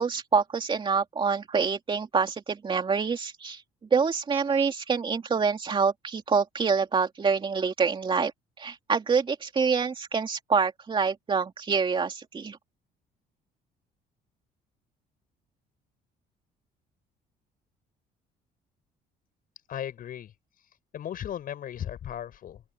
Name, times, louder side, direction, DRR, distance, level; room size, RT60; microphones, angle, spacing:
voice 1, 0.0-3.6 3.9-8.3 8.6-12.6, right 5 dB, 30° right, 3.1 m, -26 dB
voice 2, 19.7-20.3 20.9-22.6, left 10 dB, 55° left, 7.8 m, -36 dB
open air
cardioid pair, 110°, 17 cm